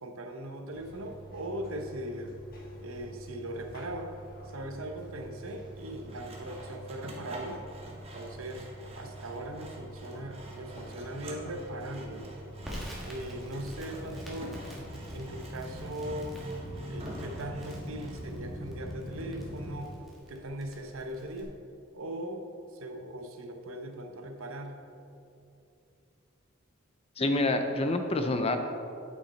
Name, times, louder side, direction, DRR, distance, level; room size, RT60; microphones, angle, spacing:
voice 1, 0.0-2.4 2.8-4.1 4.4-7.6 8.1-8.7 9.0-12.4 13.0-14.6 15.1-16.4 16.9-20.0 20.3-21.5 21.9-22.4 22.7-24.8, right 1 dB, 75° right, 5 dB, 0.8 m, -39 dB
sound 1, 0.7-19.8, right 1 dB, 45° left, 1.4 m, -44 dB
Sawing, 5.8-18.2, right 1 dB, 30° right, 1.1 m, -48 dB
Crackle, 12.6-21.4, equal, ahead, 1.4 m, -49 dB
voice 2, 27.2-28.6, left 2 dB, 30° left, 6 dB, 0.5 m, -27 dB
8.5 x 6.1 x 4.2 m, 2.7 s
head